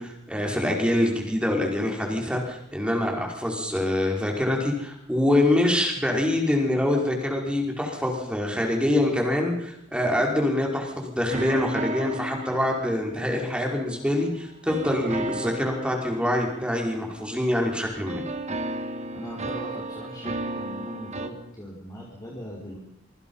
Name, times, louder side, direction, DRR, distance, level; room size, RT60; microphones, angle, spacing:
voice 1, 0.0-18.2, left 1 dB, 5° right, 0 dB, 5.0 m, -25 dB
sound 1, 11.3-14.0 14.7-17.7 18.1-21.3, right 2 dB, 35° right, 1.8 m, -34 dB
voice 2, 19.1-22.8, equal, 20° left, -3 dB, 4.7 m, -40 dB
26.0 x 23.5 x 5.6 m, 0.77 s
head